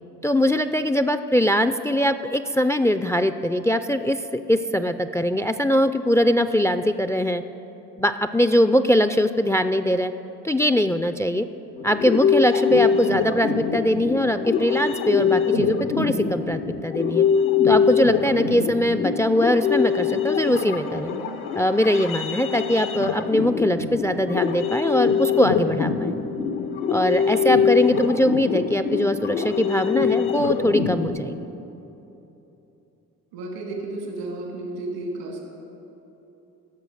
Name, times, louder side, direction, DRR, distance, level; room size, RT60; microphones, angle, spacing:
voice 1, 0.2-7.4 8.0-10.1 10.4-11.5 11.8-17.3 17.6-21.1 21.6-26.1 26.9-31.4, equal, 10° left, 11 dB, 0.4 m, -21 dB
sound 1, 11.8-31.1, left 6 dB, 80° left, 1.1 m, -23 dB
voice 2, 21.1-21.4 33.3-35.4, right 2 dB, 90° right, 0 dB, 2.5 m, -33 dB
16.0 x 6.3 x 6.4 m, 3.0 s
hypercardioid pair, 55°, 39 cm